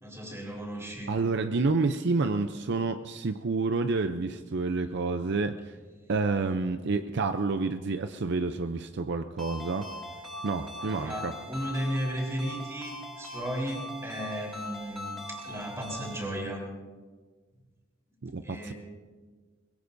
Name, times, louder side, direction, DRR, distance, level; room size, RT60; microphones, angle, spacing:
voice 1, 0.0-1.2 10.8-16.7 18.4-18.7, equal, 15° right, -2 dB, 3.9 m, -35 dB
voice 2, 1.1-5.7 6.1-9.9 10.4-11.3 18.2-18.7, right 3 dB, 60° right, 9 dB, 0.6 m, -29 dB
Ringtone, 9.4-16.3, left 1 dB, ahead, 3.7 m, -41 dB
23.0 x 21.0 x 2.7 m, 1.4 s
head